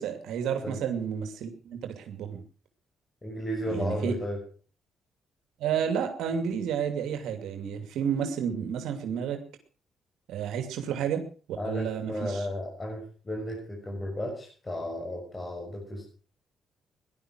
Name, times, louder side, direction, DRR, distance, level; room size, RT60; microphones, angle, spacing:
voice 1, 0.0-2.4 3.7-4.2 5.6-9.4 10.3-11.2 11.6-12.5, right 8 dB, 85° right, 6 dB, 2.7 m, -31 dB
voice 2, 3.2-4.4 11.6-16.0, equal, 25° left, -1 dB, 6.6 m, -34 dB
17.5 x 11.5 x 6.2 m, 0.41 s
cardioid pair, 90°, 0 cm